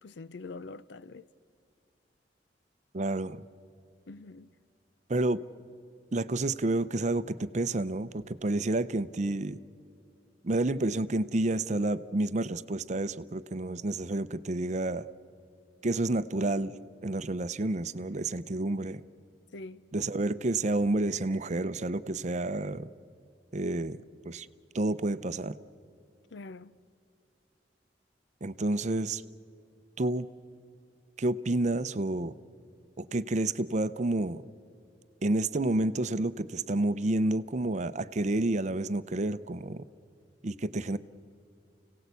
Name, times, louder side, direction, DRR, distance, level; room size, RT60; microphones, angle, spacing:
voice 1, 0.0-1.3 4.1-4.5 19.5-19.9 26.3-26.7, left 3 dB, 80° left, 0.6 m, -44 dB
voice 2, 2.9-3.4 5.1-5.4 6.1-9.6 10.4-15.0 15.8-16.7 17.0-19.0 19.9-22.9 23.5-24.5 24.7-25.6 28.4-29.2 30.0-30.3 31.2-32.3 33.0-34.4 35.2-39.8 40.4-41.0, right 2 dB, 40° right, 0.6 m, -29 dB
30.0 x 17.5 x 8.2 m
head